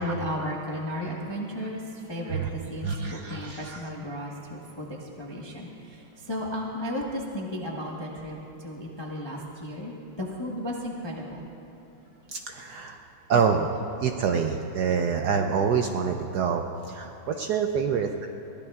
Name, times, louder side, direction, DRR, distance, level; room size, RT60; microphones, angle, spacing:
voice 1, 0.0-11.4, equal, 20° left, -2 dB, 0.7 m, -34 dB
voice 2, 2.8-3.8 12.3-13.0 13.3-13.7 14.0-18.3, right 6 dB, 75° right, 4 dB, 0.9 m, -26 dB
22.0 x 16.0 x 2.4 m, 3.0 s
omnidirectional pair, 2.3 m